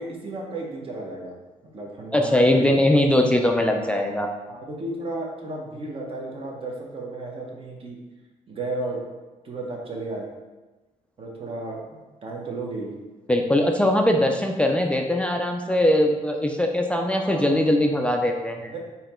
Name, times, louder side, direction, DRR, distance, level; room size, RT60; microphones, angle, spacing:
voice 1, 0.0-1.3 1.6-2.8 3.7-3.8 4.5-8.0 8.5-9.0 9.4-10.3 11.2-12.9 16.9-17.9 18.7-18.8, right 2 dB, 40° right, -1 dB, 1.0 m, -33 dB
voice 2, 2.1-4.3 13.3-18.7, left 1 dB, 10° left, 2 dB, 0.3 m, -21 dB
4.2 x 2.8 x 4.3 m, 1.2 s
cardioid pair, 110°, 14 cm